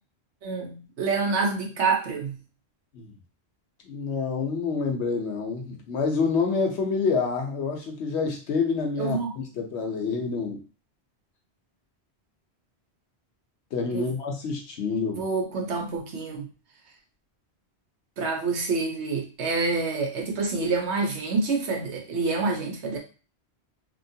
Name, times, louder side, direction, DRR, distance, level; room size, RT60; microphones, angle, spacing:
voice 1, 0.4-2.4 9.0-9.3 13.9-14.1 15.2-16.5 18.2-23.0, right 4 dB, 85° right, 1 dB, 1.1 m, -27 dB
voice 2, 3.8-10.6 13.7-15.3, left 4 dB, 85° left, 2 dB, 1.1 m, -27 dB
2.9 x 2.9 x 2.7 m, 0.35 s
omnidirectional pair, 1.1 m